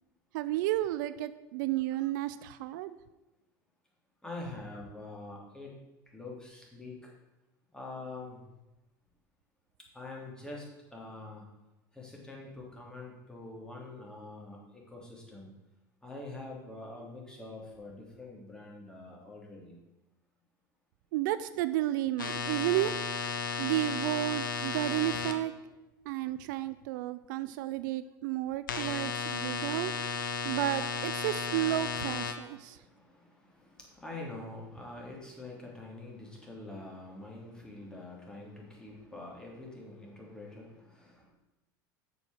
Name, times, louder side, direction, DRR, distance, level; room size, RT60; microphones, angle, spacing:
voice 1, 0.3-3.0 21.1-22.9 23.6-25.5 26.1-29.9 30.4-32.8, right 14 dB, 70° right, 14 dB, 0.4 m, -32 dB
voice 2, 4.2-5.7 6.1-6.9 7.7-8.4 9.9-10.6 10.9-11.4 11.9-15.5 16.0-19.8 32.4-41.3, left 2 dB, 5° left, -3 dB, 2.9 m, -45 dB
sound 1, 22.2-25.3 28.7-32.3, left 6 dB, 90° left, 0.7 m, -34 dB
6.8 x 4.8 x 6.2 m, 1.0 s
hypercardioid pair, 80°, 11 cm